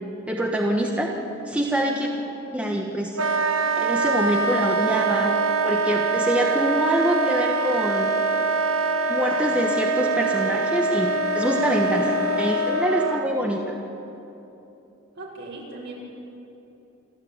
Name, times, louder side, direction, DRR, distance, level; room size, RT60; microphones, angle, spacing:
voice 1, 0.3-1.1 1.5-2.1 2.5-3.2 3.8-5.4 5.6-8.1 9.1-13.6, equal, 5° right, 0 dB, 1.3 m, -25 dB
voice 2, 1.8-2.1 15.2-15.9, right 2 dB, 60° right, -3 dB, 5.7 m, -39 dB
Wind instrument woodwind instrument, 3.1-13.3, right 3 dB, 90° right, 1.4 m, -23 dB
28.0 x 12.0 x 8.9 m, 3.0 s
head